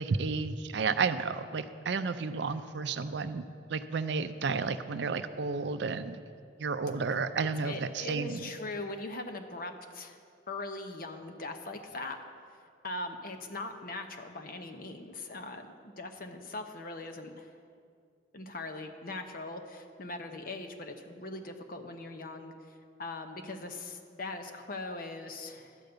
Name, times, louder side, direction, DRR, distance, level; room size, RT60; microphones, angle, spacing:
voice 1, 0.0-6.2 6.6-8.4, right 4 dB, 65° right, 11 dB, 0.4 m, -32 dB
voice 2, 7.6-10.2 10.5-12.2 12.8-17.5 18.3-22.7 23.0-25.8, left 2 dB, 45° left, 5 dB, 0.8 m, -40 dB
12.0 x 5.2 x 7.9 m, 2.2 s
head